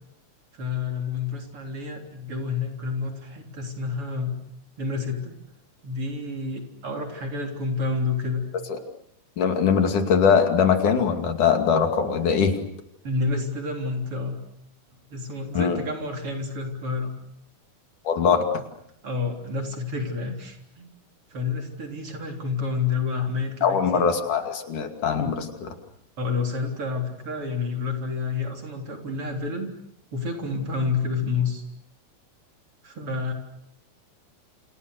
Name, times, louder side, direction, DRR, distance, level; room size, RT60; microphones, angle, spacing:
voice 1, 0.5-4.3 4.8-5.4 5.8-8.4 13.0-14.4 15.1-17.1 19.0-20.9 21.3-24.1 26.2-29.7 30.1-31.6 32.8-33.3, left 4 dB, 45° right, 3 dB, 4.4 m, -29 dB
voice 2, 9.4-12.5 15.5-15.8 18.1-18.4 23.6-25.8, left 6 dB, 80° left, 5 dB, 4.0 m, -21 dB
29.5 x 28.0 x 6.6 m, 0.76 s
omnidirectional pair, 3.6 m